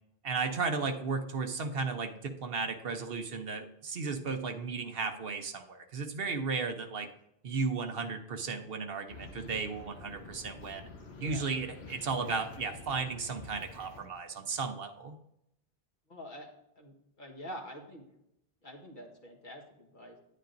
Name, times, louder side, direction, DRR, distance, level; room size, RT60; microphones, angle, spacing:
voice 1, 0.2-7.1 7.4-10.9 11.2-15.2, right 4 dB, 65° right, 6 dB, 1.0 m, -35 dB
sound 1, 9.1-14.1, left 3 dB, 85° left, 1.3 m, -49 dB
voice 2, 16.1-16.5 16.7-18.0 18.6-20.2, equal, 50° left, 1 dB, 1.6 m, -46 dB
10.0 x 9.7 x 2.6 m, 0.80 s
omnidirectional pair, 1.0 m